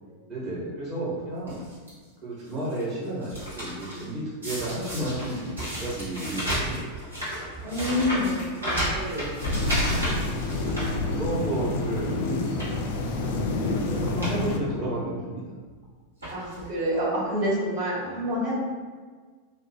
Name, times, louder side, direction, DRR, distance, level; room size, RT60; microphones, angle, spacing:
voice 1, 0.3-1.6 2.2-7.2 7.6-8.0 10.5-15.4 18.0-18.3, right 1 dB, 35° right, -8 dB, 1.2 m, -33 dB
sound 1, 1.5-1.9 2.5-4.0 4.4-11.5 11.9-12.0 12.5-12.8 13.7-13.8 14.0-14.4 14.7-14.8 15.7-15.8 16.2-16.7 17.5-17.6 17.7-17.8, equal, 75° right, 1.1 m, -32 dB
voice 2, 7.6-9.4 16.3-18.5, equal, 55° right, -10 dB, 1.4 m, -28 dB
sound 2, 9.4-14.6, left 2 dB, 50° left, 0.3 m, -28 dB
2.8 x 2.2 x 2.8 m, 1.5 s
figure-of-eight pair, 90°, 0 cm